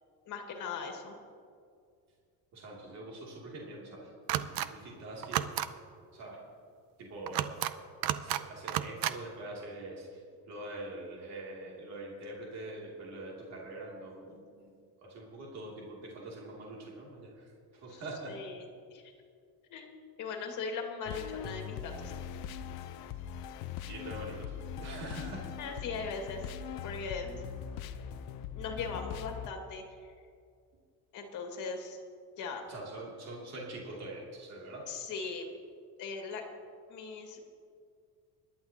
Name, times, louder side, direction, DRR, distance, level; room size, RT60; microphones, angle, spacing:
voice 1, 0.3-1.2 17.9-18.0 18.3-18.6 18.9-19.1 19.7-22.1 25.6-26.5 26.8-27.4 28.6-29.8 31.1-32.0 32.4-32.6 34.9-35.6 36.0-36.4 36.9-37.4, left 5 dB, 50° left, 2 dB, 2.0 m, -39 dB
voice 2, 2.5-5.5 6.1-6.4 7.0-7.6 8.1-10.2 10.5-14.7 15.0-18.4 23.8-25.5 32.7-34.9, right 1 dB, 45° right, -3 dB, 2.7 m, -44 dB
sound 1, 4.3-4.7 5.2-5.7 7.3-7.7 8.0-8.4 8.7-9.1, right 13 dB, 65° right, 0.6 m, -31 dB
sound 2, 21.1-29.5, left 8 dB, 70° left, 0.7 m, -41 dB
26.0 x 11.5 x 2.9 m, 2.2 s
cardioid pair, 180°, 38 cm